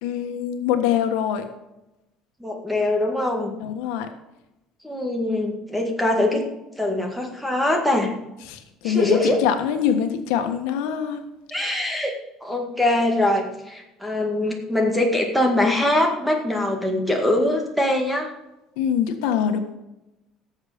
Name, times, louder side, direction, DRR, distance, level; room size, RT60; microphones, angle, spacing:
voice 1, 0.0-1.5 3.6-4.1 8.5-11.2 18.8-19.6, left 8 dB, 90° left, 6 dB, 1.4 m, -24 dB
voice 2, 2.4-3.5 4.8-6.5 6.8-8.1 8.8-9.4 11.5-12.1 12.4-18.3, left 1 dB, ahead, 2 dB, 1.9 m, -22 dB
17.0 x 7.3 x 5.1 m, 0.93 s
cardioid pair, 160°, 0 cm